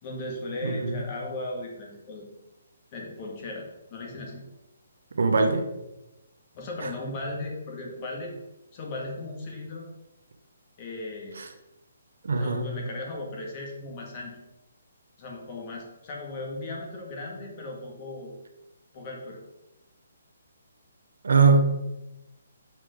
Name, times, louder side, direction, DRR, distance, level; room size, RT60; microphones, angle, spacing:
voice 1, 0.0-2.2 2.9-4.4 6.5-8.3 8.7-9.9 10.8-11.4 12.4-14.4 15.2-18.3 18.9-19.4, left 2 dB, 35° left, -1 dB, 1.8 m, -37 dB
voice 2, 0.6-1.0 5.1-5.6 12.2-12.7 21.2-21.6, right 4 dB, 75° right, 6 dB, 0.9 m, -21 dB
6.0 x 4.8 x 5.0 m, 0.96 s
hypercardioid pair, 155°, 0 cm